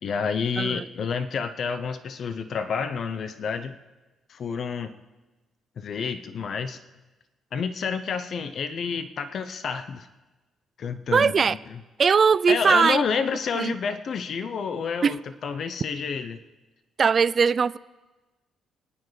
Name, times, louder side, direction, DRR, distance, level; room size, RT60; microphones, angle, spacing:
voice 1, 0.0-3.7 4.3-4.9 5.8-6.8 7.5-10.1 10.8-11.6 12.5-16.4, left 6 dB, 60° left, 9 dB, 0.6 m, -29 dB
voice 2, 11.1-11.6 12.0-13.0 13.6-13.7 15.0-15.2 17.0-17.8, right 6 dB, 45° right, 17 dB, 0.3 m, -20 dB
26.0 x 9.7 x 3.2 m, 1.2 s
cardioid pair, 90°, 0 cm